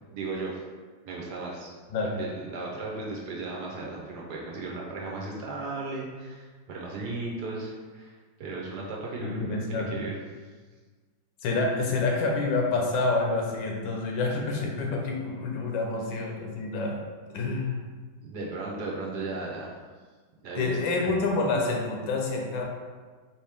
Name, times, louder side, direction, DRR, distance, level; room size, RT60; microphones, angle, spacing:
voice 1, 0.1-0.6 1.0-1.7 2.2-10.2 18.2-19.8 20.4-20.8, right 3 dB, 65° right, -3 dB, 1.2 m, -36 dB
voice 2, 9.2-10.1 11.4-17.0 17.3-17.8 20.6-22.7, left 3 dB, 75° left, 0 dB, 1.4 m, -28 dB
4.6 x 3.0 x 3.4 m, 1.4 s
omnidirectional pair, 2.1 m